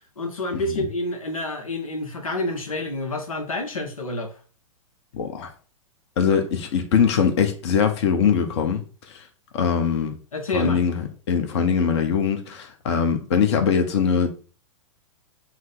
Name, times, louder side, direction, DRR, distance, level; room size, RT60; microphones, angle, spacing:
voice 1, 0.2-4.4 10.3-10.8, left 1 dB, 85° left, 1.0 m, -28 dB
voice 2, 5.1-5.5 6.2-9.2 9.5-10.2 10.5-14.3, left 7 dB, 55° left, 1.1 m, -22 dB
6.1 x 2.2 x 3.9 m
figure-of-eight pair, 110°, 17 cm